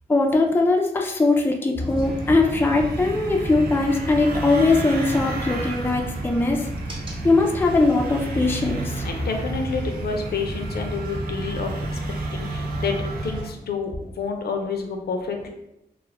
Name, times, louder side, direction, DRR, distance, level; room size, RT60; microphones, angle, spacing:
voice 1, 0.1-6.7 7.2-9.0, left 3 dB, 15° left, 2 dB, 0.3 m, -20 dB
sound 1, 1.8-13.4, right 1 dB, 30° right, 0.8 m, -32 dB
sound 2, 2.0-13.5, right 3 dB, 65° right, 0.5 m, -34 dB
voice 2, 9.0-12.0 12.3-15.5, left 5 dB, 70° left, 3 dB, 0.5 m, -29 dB
2.3 x 2.1 x 3.2 m, 0.87 s
cardioid pair, 55°, 17 cm